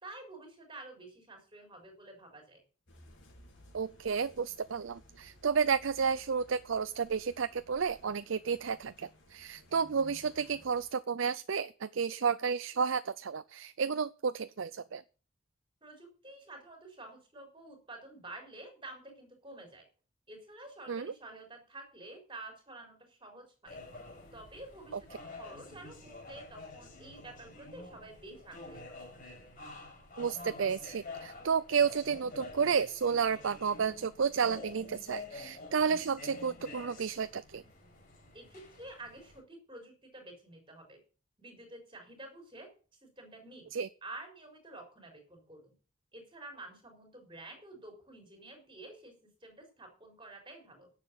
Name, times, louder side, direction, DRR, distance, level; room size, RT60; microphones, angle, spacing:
voice 1, 0.0-2.6 15.8-19.9 20.3-23.8 24.3-29.1 38.3-41.0 41.4-42.7 43.0-43.7 44.0-45.8 46.1-50.9, right 2 dB, 25° right, 4.2 m, -50 dB
sound 1, 2.9-10.9, left 1 dB, 60° left, 4.7 m, -58 dB
voice 2, 3.7-15.0 20.9-21.1 30.2-37.6 43.7-43.9, right 6 dB, 65° right, 0.5 m, -31 dB
sound 2, 23.7-39.4, left 3 dB, 40° left, 5.6 m, -49 dB
10.5 x 7.5 x 7.6 m
head